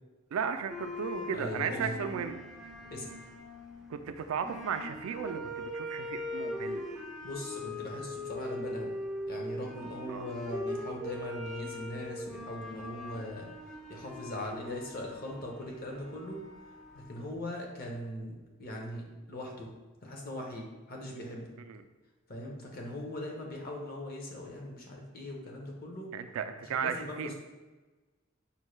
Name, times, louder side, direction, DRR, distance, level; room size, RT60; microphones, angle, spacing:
voice 1, 0.3-2.4 3.9-7.0 10.1-10.3 21.6-21.8 26.1-27.3, right 6 dB, 85° right, 8 dB, 0.3 m, -35 dB
sound 1, 0.7-17.4, left 1 dB, ahead, 0.3 m, -41 dB
voice 2, 1.3-1.9 2.9-3.1 7.2-8.9 9.3-13.5 13.9-16.4 16.9-19.7 20.0-21.5 22.3-26.1 26.7-27.3, left 1 dB, 45° left, 0 dB, 0.7 m, -40 dB
5.3 x 2.1 x 3.1 m, 1.2 s
head